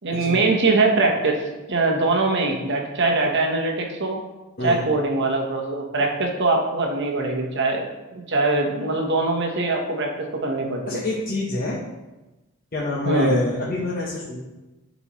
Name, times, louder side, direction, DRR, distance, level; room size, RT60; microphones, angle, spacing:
voice 1, 0.0-1.4 1.7-4.2 4.6-7.9 8.3-10.1 10.4-11.0 13.0-13.4, right 3 dB, 55° right, 1 dB, 1.1 m, -22 dB
voice 2, 10.9-11.8 12.7-14.4, left 1 dB, 40° left, -6 dB, 1.0 m, -26 dB
11.5 x 4.1 x 3.1 m, 1.1 s
head